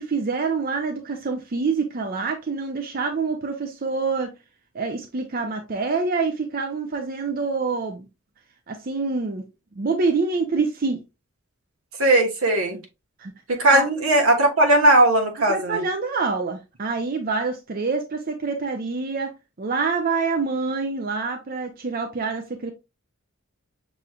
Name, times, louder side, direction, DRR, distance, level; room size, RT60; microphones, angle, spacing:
voice 1, 0.0-4.3 4.7-8.1 8.7-9.4 9.8-11.0 13.2-13.9 15.5-19.3 19.6-22.7, right 4 dB, 45° right, 0.5 m, -26 dB
voice 2, 12.0-12.8 13.5-15.8, right 1 dB, 85° right, 1.3 m, -18 dB
6.1 x 3.1 x 2.3 m
head